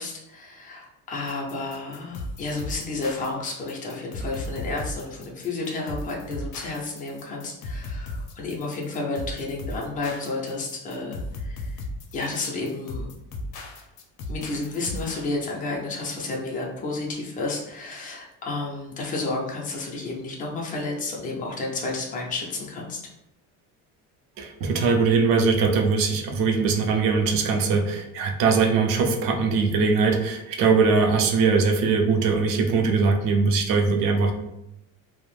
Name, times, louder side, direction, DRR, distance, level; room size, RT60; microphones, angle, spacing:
voice 1, 0.0-11.8 12.1-13.1 14.3-23.0, left 3 dB, 20° left, -2 dB, 0.4 m, -31 dB
sound 1, 1.3-15.3, left 1 dB, 65° left, 0.6 m, -36 dB
voice 2, 24.4-34.3, right 4 dB, 65° right, 3 dB, 0.5 m, -21 dB
2.4 x 2.0 x 3.1 m, 0.88 s
cardioid pair, 175°, 37 cm